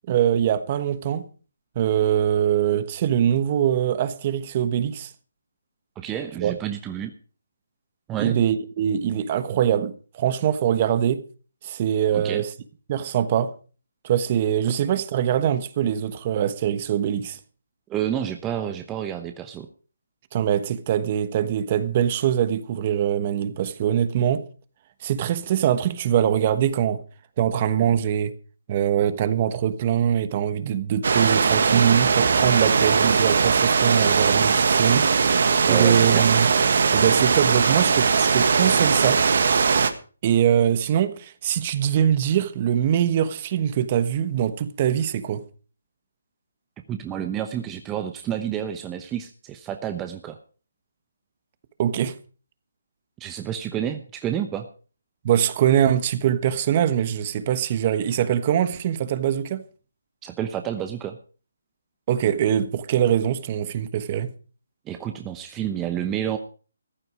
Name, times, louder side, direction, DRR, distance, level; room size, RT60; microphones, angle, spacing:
voice 1, 0.1-1.3 1.7-5.1 6.4-6.5 8.2-11.2 11.6-12.5 12.9-13.5 14.0-17.4 20.3-24.4 25.0-27.0 27.4-28.3 28.7-35.1 35.3-36.5 36.9-39.2 40.2-45.4 51.8-52.1 55.2-59.6 62.1-64.3, right 9 dB, 35° right, 1.2 m, -23 dB
voice 2, 6.0-7.1 8.1-8.3 12.1-12.4 17.9-19.7 35.7-36.3 46.9-50.4 53.2-54.7 60.2-61.2 64.9-66.4, right 10 dB, 15° right, 0.9 m, -29 dB
sound 1, 31.0-39.9, right 5 dB, 60° right, 1.6 m, -20 dB
14.5 x 11.0 x 5.0 m
figure-of-eight pair, 155°, 0 cm